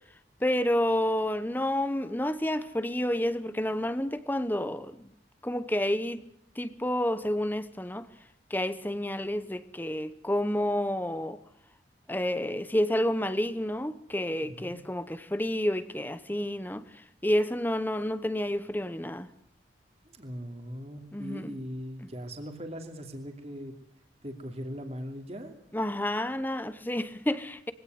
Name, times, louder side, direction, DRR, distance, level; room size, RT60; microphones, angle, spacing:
voice 1, 0.4-5.1 5.4-6.2 6.6-8.1 8.5-11.4 12.1-16.8 17.2-19.3 21.1-21.5 25.7-27.7, left 1 dB, 10° left, 0.9 m, -29 dB
voice 2, 14.4-14.8 20.0-23.7 24.2-25.5, equal, 35° right, 2.8 m, -40 dB
22.5 x 17.5 x 9.4 m
head